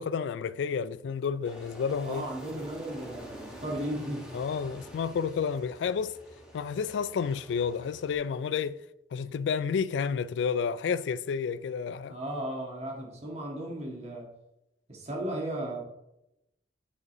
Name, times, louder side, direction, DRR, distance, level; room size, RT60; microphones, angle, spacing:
voice 1, 0.0-2.2 4.3-6.1 6.5-8.8 9.1-12.2, left 6 dB, 85° left, 0.3 m, -30 dB
Aircraft, 1.4-8.1, equal, 5° right, 1.5 m, -47 dB
voice 2, 2.0-4.3 12.1-14.3 14.9-15.8, right 1 dB, 40° right, 1.7 m, -35 dB
9.6 x 5.3 x 3.0 m
head